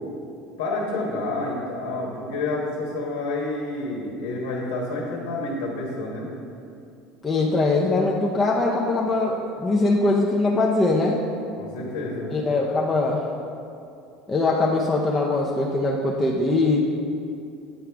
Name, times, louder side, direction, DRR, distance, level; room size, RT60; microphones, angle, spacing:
voice 1, 0.6-6.3 11.6-12.3, left 2 dB, 85° left, -2 dB, 1.2 m, -29 dB
voice 2, 7.2-11.2 12.3-13.3 14.3-16.8, left 2 dB, 20° left, -4 dB, 0.7 m, -22 dB
9.0 x 4.7 x 3.5 m, 2.6 s
supercardioid pair, 100°, 0 cm